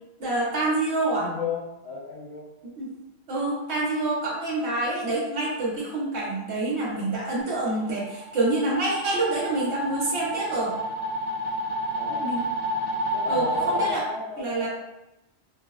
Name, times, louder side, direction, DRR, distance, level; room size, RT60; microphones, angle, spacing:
voice 1, 0.2-1.3 2.8-2.9 3.3-10.7 12.2-12.4 13.3-14.0 14.4-14.7, right 2 dB, 90° right, -5 dB, 1.0 m, -27 dB
voice 2, 1.1-2.5 11.9-12.3 13.1-14.7, left 5 dB, 80° left, -6 dB, 0.9 m, -34 dB
sound 1, 7.8-13.9, equal, 65° left, 1.6 m, -29 dB
4.6 x 2.0 x 2.3 m, 0.96 s
omnidirectional pair, 1.1 m